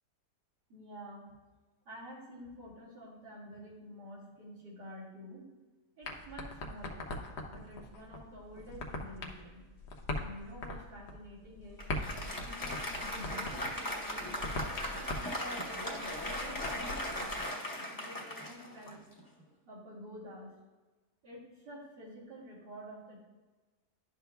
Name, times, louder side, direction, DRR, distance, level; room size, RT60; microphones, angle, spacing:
voice 1, 0.7-1.3 1.8-5.4 6.0-7.1 7.5-9.7 10.2-11.9 12.1-15.4 15.8-19.0 19.6-20.5 21.2-23.2, equal, 90° right, -7 dB, 2.9 m, -49 dB
sound 1, 6.0-17.4, left 2 dB, 90° left, 1.5 m, -42 dB
Applause, 11.8-19.4, equal, 15° left, 0.8 m, -38 dB
11.5 x 6.5 x 2.3 m, 1.2 s
omnidirectional pair, 1.7 m